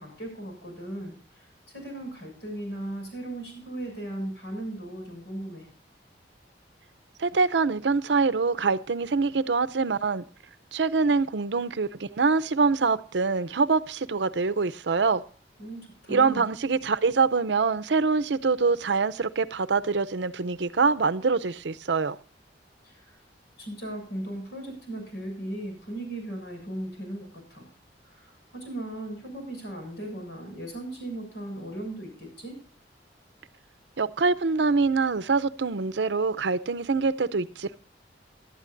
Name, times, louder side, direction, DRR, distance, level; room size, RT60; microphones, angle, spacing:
voice 1, 0.0-1.5 1.7-5.7 15.6-16.4 22.8-23.2 23.6-27.7 28.1-32.5, right 1 dB, 70° left, 7.2 m, -37 dB
voice 2, 7.2-10.2 10.7-15.2 16.1-22.2 34.0-37.8, right 4 dB, 70° right, 0.6 m, -24 dB
17.5 x 12.0 x 2.6 m
head